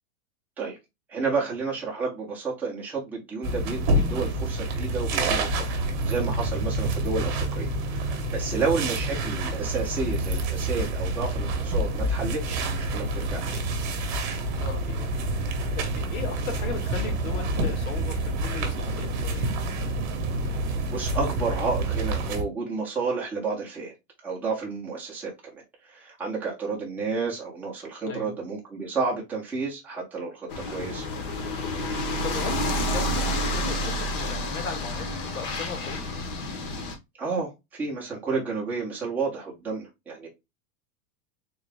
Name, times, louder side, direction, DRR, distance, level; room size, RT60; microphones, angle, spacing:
voice 1, 1.1-5.7 6.0-13.6 20.5-23.9 24.2-25.6 25.9-31.1 37.2-40.3, right 4 dB, 5° right, 0.6 m, -31 dB
sound 1, 3.4-22.4, right 2 dB, 35° right, 0.9 m, -28 dB
voice 2, 14.5-15.2 15.5-19.5 28.1-28.3 32.2-33.3 33.6-36.0, left 6 dB, 85° left, 1.6 m, -37 dB
sound 2, 30.5-36.9, left 1 dB, 40° left, 0.8 m, -29 dB
3.8 x 2.8 x 3.3 m
supercardioid pair, 180°, 41 cm